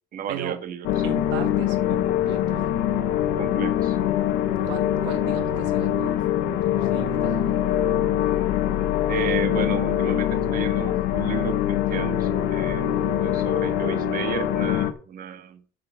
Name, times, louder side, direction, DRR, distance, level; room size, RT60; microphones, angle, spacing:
voice 1, 0.1-0.9 3.4-4.0 9.1-12.9 13.1-15.6, right 9 dB, 55° right, 9 dB, 1.5 m, -33 dB
sound 1, 0.8-14.9, left 11 dB, 85° left, 1.3 m, -23 dB
voice 2, 1.0-2.6 4.6-6.2 6.6-7.7 10.7-10.8, right 11 dB, 85° right, 7 dB, 1.3 m, -36 dB
7.7 x 7.3 x 6.8 m, 0.39 s
cardioid pair, 115°, 18 cm